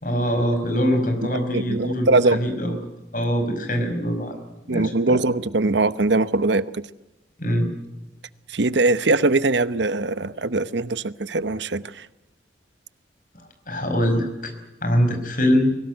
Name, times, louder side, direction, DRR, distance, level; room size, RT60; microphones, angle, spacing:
voice 1, 0.0-2.8 3.1-4.4 4.7-5.2 7.4-7.7 13.3-14.5 14.8-15.8, equal, 45° left, 6 dB, 5.2 m, -23 dB
voice 2, 1.5-2.4 4.7-6.9 8.5-12.1, right 3 dB, 70° right, 15 dB, 0.9 m, -21 dB
23.5 x 18.0 x 9.2 m, 0.99 s
head